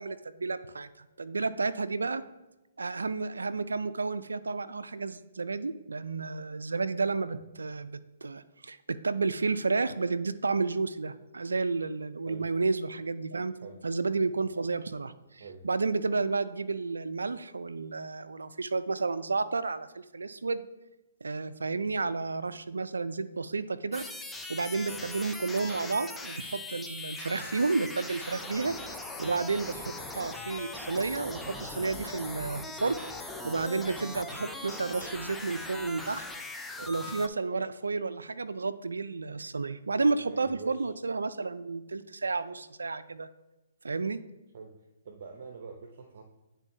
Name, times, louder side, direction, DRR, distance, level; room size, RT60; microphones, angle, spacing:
voice 1, 0.0-2.2 2.8-13.6 13.8-20.7 21.2-24.0 24.5-28.8 29.2-32.9 33.4-36.2 36.9-43.3 43.8-44.2, right 4 dB, 85° right, 12 dB, 0.3 m, -31 dB
sound 1, 23.9-37.3, left 2 dB, 5° left, 0.5 m, -40 dB
voice 2, 40.1-40.9 44.5-44.7 45.0-46.2, right 5 dB, 55° right, 3 dB, 0.7 m, -45 dB
9.9 x 3.8 x 2.7 m, 1.0 s
hypercardioid pair, 135°, 0 cm